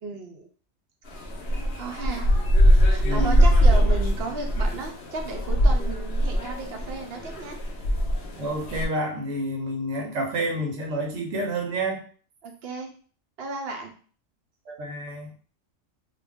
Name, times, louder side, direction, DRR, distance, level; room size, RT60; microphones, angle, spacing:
voice 1, 0.0-0.5 1.7-2.3 2.9-7.6 12.4-12.9 13.4-13.9, right 3 dB, 65° right, 3 dB, 0.7 m, -34 dB
sound 1, 1.1-8.8, equal, 60° left, 0.8 m, -22 dB
voice 2, 3.0-3.5 8.4-12.0 14.7-15.3, right 1 dB, 80° right, 2 dB, 1.0 m, -29 dB
2.4 x 2.2 x 3.4 m, 0.42 s
omnidirectional pair, 1.3 m